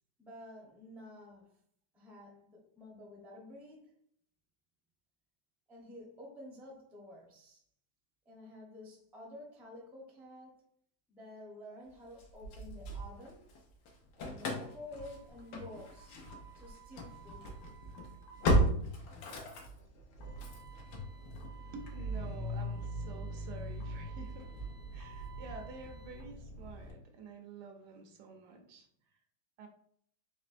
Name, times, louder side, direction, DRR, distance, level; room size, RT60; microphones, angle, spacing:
voice 1, 0.2-1.6 1.9-4.0 5.7-7.6 8.3-10.6 11.1-13.5 14.2-16.2 16.5-17.5, left 1 dB, ahead, 0.4 m, -51 dB
Engine starting / Slam, 12.2-13.6 13.9-26.9, equal, 90° left, 1.5 m, -37 dB
voice 2, 21.7-24.5 24.9-28.9 29.6-29.7, right 4 dB, 75° right, 1.2 m, -49 dB
4.3 x 3.1 x 2.5 m
omnidirectional pair, 2.0 m